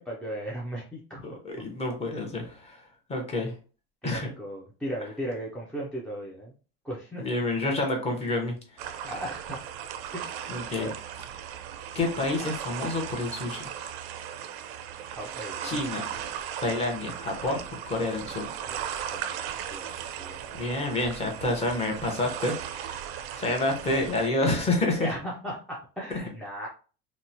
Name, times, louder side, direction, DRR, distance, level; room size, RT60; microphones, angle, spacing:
voice 1, 0.0-1.4 4.0-6.5 6.8-7.2 9.0-9.6 10.1-10.5 10.7-10.9 15.1-15.8 18.7-20.6 25.0-26.7, right 1 dB, 5° left, -5 dB, 0.3 m, -37 dB
voice 2, 1.2-3.5 4.0-4.3 7.2-8.9 10.5-10.9 11.9-13.7 15.6-16.0 16.6-18.5 20.5-23.1 23.4-25.1, left 2 dB, 20° left, 1 dB, 0.7 m, -29 dB
sound 1, 8.8-24.3, right 9 dB, 70° right, 0.4 m, -37 dB
2.9 x 2.1 x 2.6 m, 0.37 s
cardioid pair, 145°, 29 cm